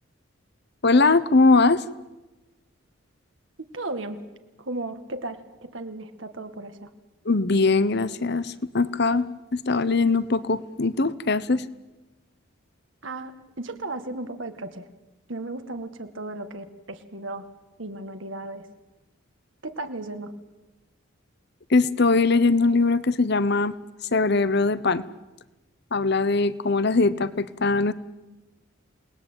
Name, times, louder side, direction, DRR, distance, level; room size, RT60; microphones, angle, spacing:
voice 1, 0.8-1.8 7.2-9.3 9.5-11.6 21.7-23.8 24.1-25.0 25.9-27.9, left 3 dB, 50° left, 17 dB, 1.0 m, -21 dB
voice 2, 3.6-4.2 4.6-6.9 13.0-13.3 13.6-14.9 15.3-17.5 17.8-18.7 19.6-20.3, right 2 dB, 65° right, 8 dB, 1.9 m, -35 dB
28.0 x 20.0 x 9.1 m, 1.1 s
head